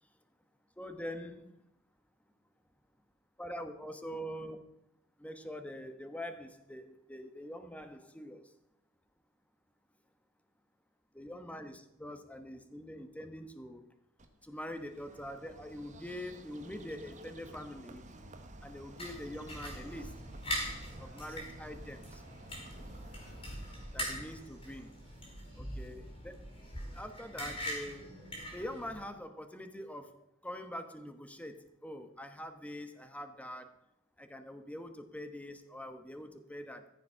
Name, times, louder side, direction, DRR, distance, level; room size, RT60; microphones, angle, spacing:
voice 1, 0.8-1.5 3.4-4.6 5.2-8.4 11.1-13.8 14.4-18.1 18.6-20.1 21.0-22.2 23.9-24.9 25.6-26.4 26.9-28.1 28.5-33.7 34.2-36.9, equal, 5° left, 8 dB, 1.1 m, -44 dB
Bird, 14.2-25.6, right 1 dB, 35° right, 1.4 m, -52 dB
sound 1, 19.0-29.0, equal, 25° left, 4.5 m, -42 dB
14.5 x 7.2 x 5.7 m, 0.83 s
head